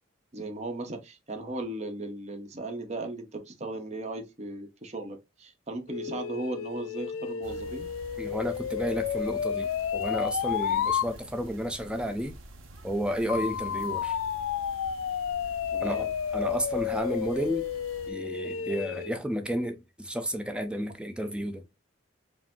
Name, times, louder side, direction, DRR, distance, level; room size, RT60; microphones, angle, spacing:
voice 1, 0.3-7.9 15.7-16.1, right 2 dB, 35° right, 0.8 m, -37 dB
sound 1, 5.9-11.1 13.3-19.1, left 8 dB, 80° left, 0.3 m, -31 dB
sound 2, 7.4-18.1, right 1 dB, 85° right, 0.7 m, -48 dB
voice 2, 8.2-12.4 12.8-14.2 15.8-17.7 18.1-21.6, equal, 5° right, 0.5 m, -32 dB
4.9 x 2.0 x 3.5 m
head